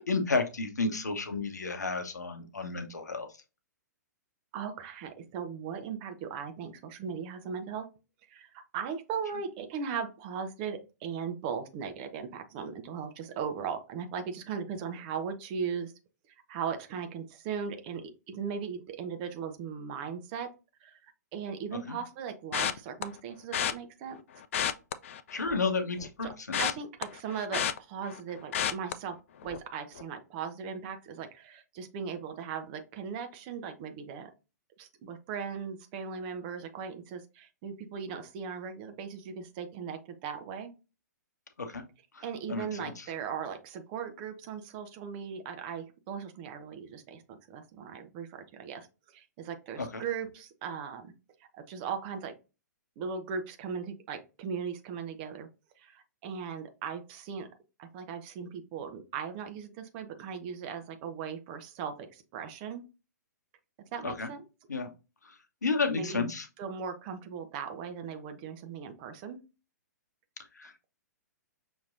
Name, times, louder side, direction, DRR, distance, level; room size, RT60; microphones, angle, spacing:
voice 1, 0.0-3.3 21.9-22.0 25.3-26.7 41.6-41.8 42.1-42.2 42.5-43.0 49.8-50.0 64.0-64.3 64.7-64.9 65.2-65.4 65.6-66.5 70.6-70.8, left 4 dB, 70° left, 7 dB, 0.9 m, -32 dB
voice 2, 4.5-7.9 8.3-15.9 16.5-20.5 20.8-21.0 21.3-24.2 26.2-26.3 26.6-29.2 29.4-34.3 34.8-40.7 42.2-47.2 47.5-51.1 51.5-52.3 53.0-55.5 55.8-57.5 57.8-62.8 63.9-64.4 65.9-66.3 66.6-69.4, right 6 dB, 30° right, 7 dB, 0.7 m, -38 dB
sound 1, 22.5-23.0 23.5-23.7 24.4-25.7 26.0-28.2 28.5-28.9 29.4-29.7 30.0-30.1, left 9 dB, 45° left, 0.4 m, -31 dB
6.1 x 3.0 x 2.5 m, 0.29 s
figure-of-eight pair, 115°, 10 cm